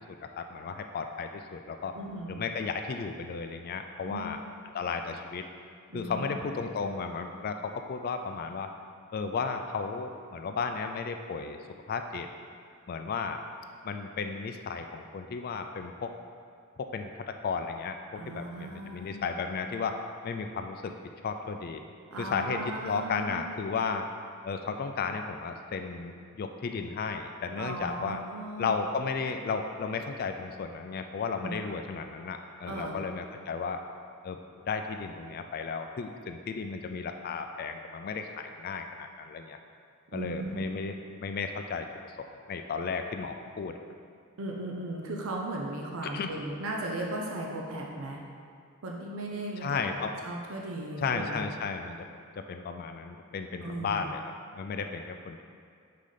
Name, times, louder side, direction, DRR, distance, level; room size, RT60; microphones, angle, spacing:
voice 1, 0.1-2.0 2.3-4.4 4.7-5.5 5.9-8.7 9.1-11.6 11.9-12.3 12.9-13.4 13.8-16.1 16.8-20.0 20.2-20.9 21.2-21.8 22.2-24.0 24.4-28.2 28.6-33.8 34.2-34.4 34.7-39.6 40.1-40.9 41.2-43.7 46.0-46.3 49.6-50.1 51.0-52.0 52.4-54.2 54.5-55.4, left 5 dB, 45° left, 6 dB, 0.3 m, -34 dB
voice 2, 1.9-2.4 4.0-4.3 5.9-6.4 18.2-19.2 22.1-23.5 27.6-28.7 31.4-31.5 32.7-33.0 40.1-40.6 44.4-48.2 48.8-49.8 50.2-51.5 53.6-54.1, right 1 dB, 75° right, -1 dB, 0.7 m, -37 dB
5.0 x 3.8 x 5.5 m, 2.3 s
head